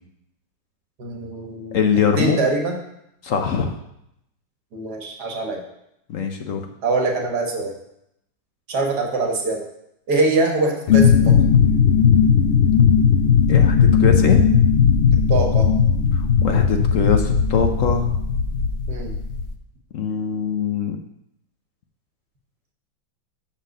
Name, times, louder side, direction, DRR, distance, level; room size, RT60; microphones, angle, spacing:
voice 1, 1.0-1.8 2.2-2.8 4.7-5.6 6.8-7.7 8.7-9.7 10.1-11.4 15.3-15.7 18.9-19.1, right 3 dB, 60° right, 2 dB, 1.9 m, -23 dB
voice 2, 1.7-2.4 3.2-3.7 6.1-6.7 13.5-14.4 16.1-18.1 19.9-21.0, left 6 dB, 60° left, 5 dB, 0.9 m, -22 dB
sound 1, 10.9-19.5, left 7 dB, 90° left, 0.6 m, -16 dB
6.5 x 6.0 x 6.5 m, 0.79 s
omnidirectional pair, 2.0 m